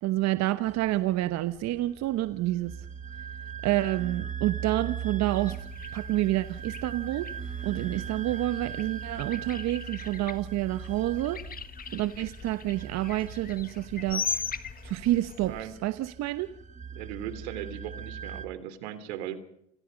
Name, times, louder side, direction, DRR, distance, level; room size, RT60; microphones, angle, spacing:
voice 1, 0.0-2.7 3.6-5.6 5.9-7.3 7.6-11.4 11.9-14.2 14.8-16.5, right 15 dB, 55° right, 12 dB, 1.1 m, -28 dB
sound 1, 0.7-18.5, right 7 dB, 20° right, 1.4 m, -40 dB
sound 2, 5.3-15.7, left 6 dB, 25° left, 1.7 m, -40 dB
voice 2, 15.4-15.7 16.9-19.4, right 11 dB, 80° right, 12 dB, 3.2 m, -38 dB
28.5 x 20.5 x 5.3 m, 0.75 s
supercardioid pair, 95°, 33 cm